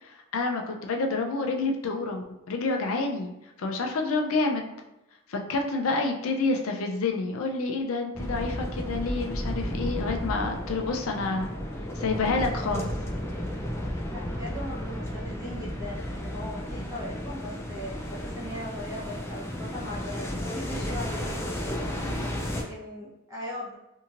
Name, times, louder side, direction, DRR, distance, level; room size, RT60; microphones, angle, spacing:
voice 1, 0.0-3.3 3.6-4.7 5.3-11.5 12.0-12.9, left 3 dB, 75° left, 3 dB, 0.5 m, -28 dB
sound 1, 8.1-22.6, equal, 10° left, 0.3 m, -33 dB
voice 2, 14.1-21.8 22.5-23.7, left 1 dB, 15° right, -8 dB, 0.7 m, -39 dB
2.9 x 2.7 x 2.5 m, 0.91 s
head